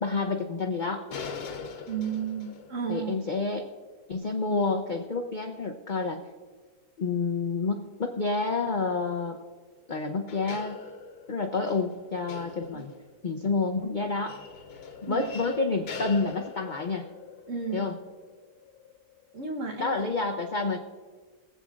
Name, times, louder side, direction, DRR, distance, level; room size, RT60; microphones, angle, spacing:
voice 1, 0.0-1.0 2.9-3.7 4.1-6.2 7.0-9.4 9.9-10.8 11.3-12.9 13.2-14.4 15.0-17.0 17.7-18.0 19.8-20.8, left 3 dB, 50° left, 3 dB, 0.5 m, -29 dB
sound 1, 1.1-5.0 9.8-9.9 10.3-19.3, left 5 dB, 70° left, 1.5 m, -43 dB
voice 2, 1.9-3.1 12.7-12.8 15.1-15.3 17.5-17.8 19.3-20.0, right 6 dB, 55° right, 2 dB, 1.4 m, -33 dB
24.5 x 8.3 x 2.4 m, 1.4 s
omnidirectional pair, 1.7 m